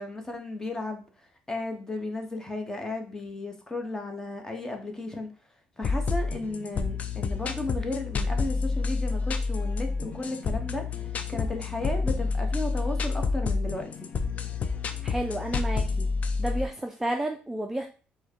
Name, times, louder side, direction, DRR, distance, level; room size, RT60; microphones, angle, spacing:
voice 1, 0.0-5.3 5.8-14.1, left 2 dB, 15° left, 1.1 m, -34 dB
sound 1, 5.8-16.7, left 4 dB, 45° left, 0.5 m, -29 dB
voice 2, 15.0-16.1 16.4-17.9, right 1 dB, 10° right, 0.5 m, -31 dB
4.6 x 2.2 x 4.5 m
supercardioid pair, 80°, 3 cm